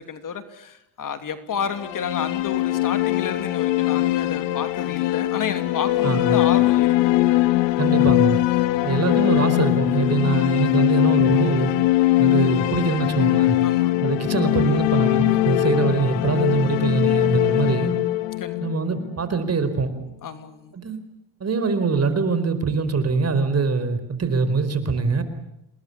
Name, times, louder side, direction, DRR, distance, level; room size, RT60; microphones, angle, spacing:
voice 1, 0.0-7.1 13.6-13.9 18.4-18.6 20.2-20.7, left 7 dB, 45° left, 10 dB, 2.9 m, -31 dB
sound 1, 1.6-19.6, left 16 dB, 80° left, 1.9 m, -21 dB
voice 2, 6.0-6.4 7.8-8.4 8.8-11.7 12.2-13.6 14.0-18.0 18.6-19.9 20.8-21.0 21.4-25.2, right 4 dB, 35° right, 11 dB, 4.6 m, -23 dB
28.0 x 20.5 x 8.5 m, 0.83 s
supercardioid pair, 95°, 44 cm